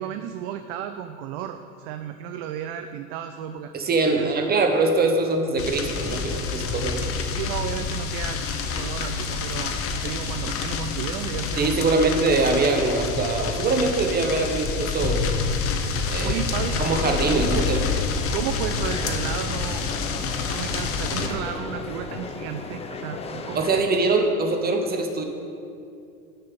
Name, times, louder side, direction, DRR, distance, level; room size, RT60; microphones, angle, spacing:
voice 1, 0.0-3.7 4.1-4.5 7.4-8.4 8.7-9.8 10.0-12.0 16.2-17.7 18.3-19.9 20.2-23.7, right 10 dB, 45° right, 9 dB, 0.5 m, -33 dB
voice 2, 3.7-7.3 11.6-15.3 16.0-16.4 16.8-17.8 23.5-25.2, right 3 dB, 20° right, 4 dB, 1.0 m, -23 dB
sound 1, 5.6-21.3, left 5 dB, 30° left, 0.8 m, -28 dB
sound 2, 16.6-23.8, left 4 dB, 15° left, 0.5 m, -36 dB
6.6 x 5.7 x 7.0 m, 2.5 s
hypercardioid pair, 85°, 43 cm